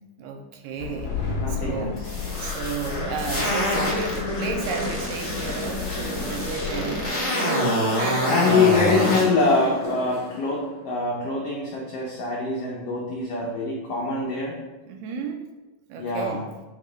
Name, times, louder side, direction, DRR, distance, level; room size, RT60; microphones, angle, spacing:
voice 1, 0.2-2.0 2.4-8.8 14.9-15.5 15.9-16.4, right 4 dB, 90° right, 3 dB, 2.4 m, -32 dB
sound 1, 0.8-7.1, left 6 dB, 40° left, 2.9 m, -33 dB
voice 2, 1.4-2.1 8.3-14.6 16.0-16.5, left 4 dB, 80° left, -3 dB, 1.3 m, -24 dB
sound 2, 2.0-4.2 4.6-9.2, equal, 20° left, 0.4 m, -27 dB
sound 3, 2.2-10.6, equal, 55° left, 0.9 m, -33 dB
8.7 x 3.0 x 3.9 m, 1.1 s
omnidirectional pair, 3.8 m